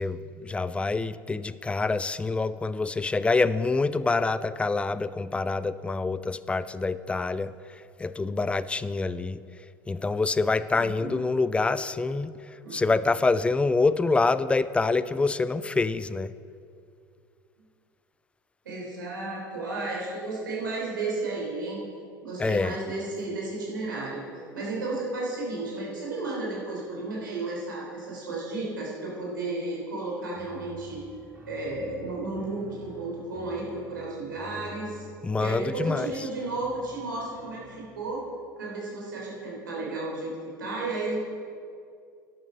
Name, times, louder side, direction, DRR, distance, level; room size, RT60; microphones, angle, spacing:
voice 1, 0.0-9.4 9.9-12.3 12.7-16.3 22.4-22.8 35.2-36.1, left 3 dB, 10° left, 16 dB, 0.3 m, -26 dB
voice 2, 10.8-11.2 12.6-12.8 18.7-21.8 22.2-24.2 24.5-31.0 31.5-35.1 35.4-38.2 38.6-41.2, right 2 dB, 75° right, -4 dB, 3.3 m, -33 dB
sound 1, 30.3-38.4, left 1 dB, 15° right, 3.2 m, -49 dB
11.0 x 8.6 x 5.2 m, 2.3 s
figure-of-eight pair, 75°, 11 cm